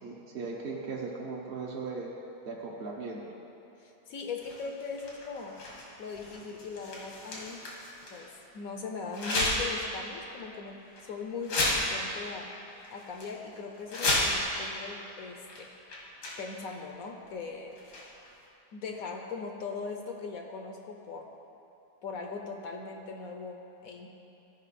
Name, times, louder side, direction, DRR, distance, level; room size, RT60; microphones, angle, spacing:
voice 1, 0.0-2.1 2.5-3.2, right 4 dB, 45° right, -3 dB, 0.8 m, -38 dB
voice 2, 3.8-5.6 6.0-7.6 8.1-12.5 12.9-15.7 16.4-17.8 18.7-21.3 22.0-24.1, left 4 dB, 65° left, 3 dB, 1.0 m, -40 dB
sound 1, 4.4-8.3 9.1-9.8 10.2-10.3 11.0-11.1 11.4-12.2 12.5-12.6 12.8-13.3 13.7-14.6 15.5-15.6 15.9-16.7 17.7-18.3, left 1 dB, 85° left, 2.1 m, -32 dB
13.5 x 5.2 x 4.1 m, 3.0 s
omnidirectional pair, 1.7 m